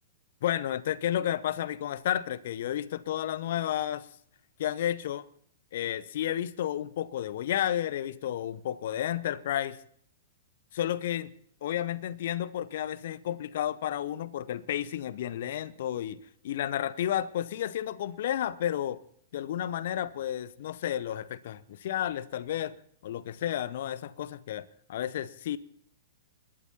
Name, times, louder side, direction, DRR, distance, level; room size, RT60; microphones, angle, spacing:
voice 1, 0.4-4.1 4.6-5.2 5.7-9.8 10.7-11.3 11.6-16.2 16.4-19.0 19.3-22.7 23.0-25.6, left 11 dB, 55° left, 0.6 m, -32 dB
28.0 x 12.5 x 2.9 m
figure-of-eight pair, 105°, 0 cm